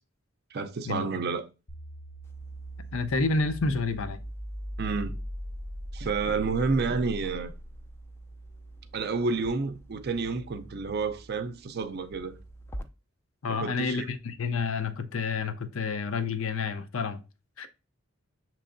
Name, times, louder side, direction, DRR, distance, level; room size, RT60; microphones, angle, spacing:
voice 1, 0.5-1.4 4.8-5.2 5.9-7.5 8.9-12.4 13.5-14.1, right 4 dB, 50° right, 0.5 m, -30 dB
sound 1, 1.7-7.9, equal, 40° left, 0.7 m, -39 dB
sound 2, 2.2-12.8, right 1 dB, 10° left, 0.3 m, -48 dB
voice 2, 2.8-4.2 13.4-17.2 17.6-17.7, left 4 dB, 80° left, 0.6 m, -29 dB
6.7 x 3.0 x 2.5 m
head